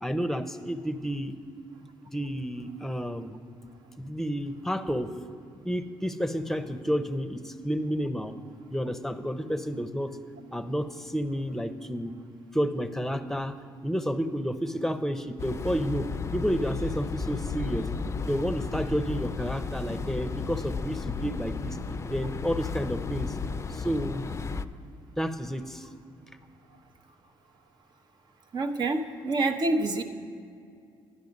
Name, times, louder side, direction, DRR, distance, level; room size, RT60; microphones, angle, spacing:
voice 1, 0.0-1.4 2.1-3.4 4.0-5.1 5.6-8.4 8.7-10.2 10.5-12.1 12.5-13.5 13.8-17.9 18.3-21.8 22.1-23.4 23.7-24.2 25.2-25.9, equal, 5° left, 11 dB, 0.8 m, -30 dB
sound 1, 15.4-24.6, left 5 dB, 30° left, 0.5 m, -34 dB
voice 2, 28.5-30.0, right 2 dB, 50° right, 6 dB, 1.0 m, -27 dB
11.5 x 10.5 x 5.3 m, 2.4 s
supercardioid pair, 65°, 9 cm